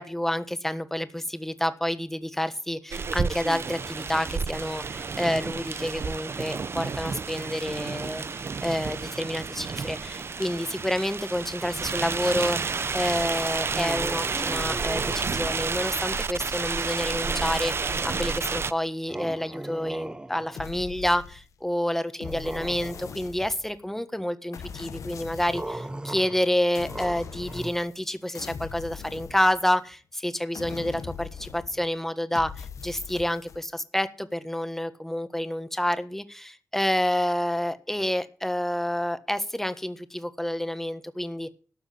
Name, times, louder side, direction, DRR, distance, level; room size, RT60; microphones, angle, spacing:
voice 1, 0.0-41.5, left 1 dB, 5° left, 1.4 m, -29 dB
sound 1, 2.9-18.7, right 5 dB, 50° right, 0.8 m, -31 dB
sound 2, 13.7-15.8 17.2-18.6 19.1-20.7 22.2-23.3 25.5-27.7, right 1 dB, 15° right, 0.8 m, -38 dB
sound 3, 20.6-21.7 22.2-23.8 24.5-25.9 26.7-28.1 28.3-29.9 30.5-31.9 32.3-33.6, left 7 dB, 80° left, 1.0 m, -41 dB
13.0 x 6.4 x 8.6 m
cardioid pair, 60°, 5 cm